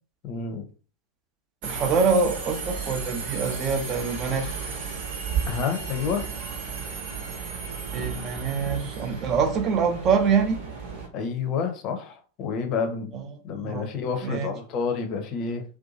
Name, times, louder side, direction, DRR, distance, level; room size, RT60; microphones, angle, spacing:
voice 1, 0.2-0.6 5.5-6.3 11.1-13.1 13.4-15.6, left 5 dB, 40° left, 5 dB, 0.6 m, -29 dB
voice 2, 1.6-4.5 7.9-10.6 13.1-13.2 13.6-13.9 14.2-14.5, right 5 dB, 30° right, 5 dB, 0.6 m, -25 dB
Subway metro underground, 1.6-11.1, right 6 dB, 45° right, 1.0 m, -33 dB
2.6 x 2.2 x 2.7 m, 0.39 s
figure-of-eight pair, 90°, 0 cm